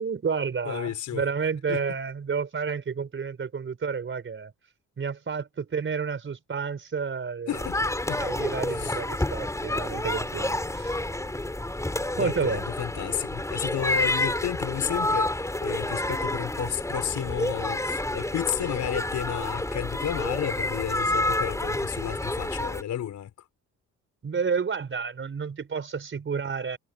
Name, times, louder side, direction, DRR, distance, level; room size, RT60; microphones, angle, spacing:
voice 1, 0.0-4.5 5.0-7.6 8.2-10.9 12.2-12.7 24.2-26.8, right 6 dB, 40° right, 4.9 m, -30 dB
voice 2, 0.7-1.2 1.7-1.8 7.5-8.2 8.7-9.0 12.2-23.5, left 10 dB, 70° left, 5.6 m, -32 dB
sound 1, 7.5-22.8, left 1 dB, 10° left, 4.4 m, -29 dB
cardioid pair, 90°, 30 cm